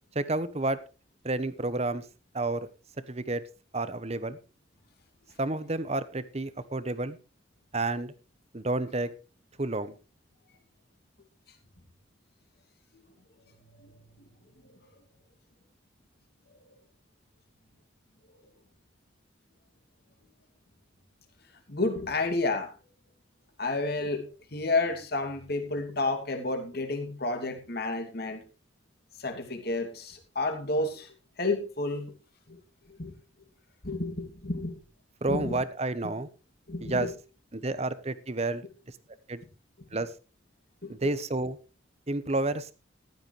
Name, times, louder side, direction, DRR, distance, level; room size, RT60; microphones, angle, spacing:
voice 1, 0.1-0.8 1.2-2.0 2.3-2.7 3.1-3.4 3.7-4.4 5.4-7.2 7.7-8.1 8.5-9.1 9.6-9.9 35.2-36.3 36.8-37.1 37.5-38.6 39.3-39.4 39.9-40.1 40.9-41.6 42.1-42.7, right 2 dB, 35° right, 14 dB, 1.0 m, -30 dB
voice 2, 13.7-14.0 21.7-22.7 23.6-24.2 24.5-28.4 29.2-31.1 31.4-32.1 32.5-32.6 32.9-33.1 33.8-34.8 35.3-35.6 36.7-37.1 40.8-41.1, left 2 dB, 55° left, 5 dB, 2.7 m, -31 dB
15.0 x 12.0 x 3.3 m, 0.31 s
head